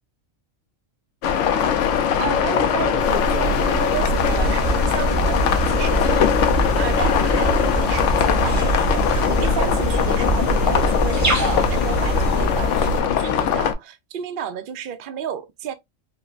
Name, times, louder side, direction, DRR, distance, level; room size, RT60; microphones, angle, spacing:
sound 1, 1.2-13.7, left 8 dB, 70° left, 0.9 m, -21 dB
voice 1, 1.5-1.8 2.2-15.7, right 9 dB, 60° right, 0.5 m, -32 dB
sound 2, 3.0-13.0, right 2 dB, 35° right, 1.7 m, -26 dB
sound 3, 4.2-12.5, right 1 dB, 15° right, 1.1 m, -26 dB
5.1 x 2.1 x 2.3 m
omnidirectional pair, 1.4 m